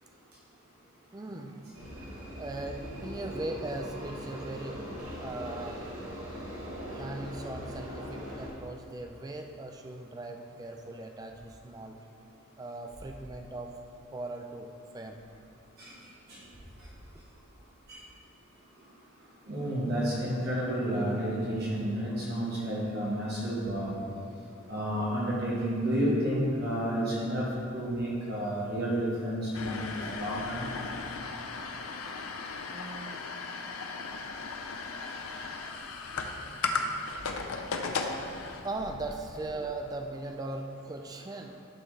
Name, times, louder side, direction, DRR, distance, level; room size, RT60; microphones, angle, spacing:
voice 1, 1.1-1.6 2.4-4.8 5.2-5.8 6.9-12.0 12.6-13.7 14.1-15.2 32.7-33.2 37.2-37.3 38.6-41.6, right 2 dB, 15° right, 4 dB, 0.3 m, -39 dB
sound 1, 1.7-8.5, equal, 70° right, 1.8 m, -40 dB
voice 2, 19.5-23.9 24.7-27.4 27.7-30.6, equal, 45° right, -6 dB, 1.5 m, -30 dB
sound 2, 29.5-39.9, left 4 dB, 80° left, 0.6 m, -36 dB
11.0 x 4.3 x 3.3 m, 2.4 s
head